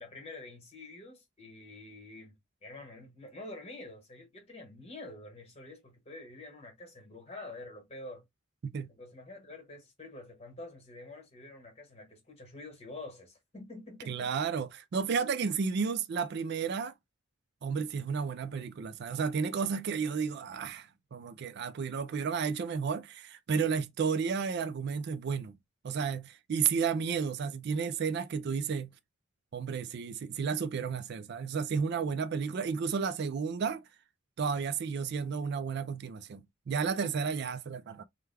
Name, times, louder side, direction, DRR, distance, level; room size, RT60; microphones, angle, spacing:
voice 1, 0.0-8.2 8.9-14.3 37.3-37.4, left 2 dB, 30° left, 1.3 m, -47 dB
voice 2, 14.1-16.9 17.6-25.6 25.8-28.9 29.5-33.8 34.4-38.0, right 6 dB, 55° right, 0.4 m, -32 dB
3.3 x 2.1 x 3.3 m
head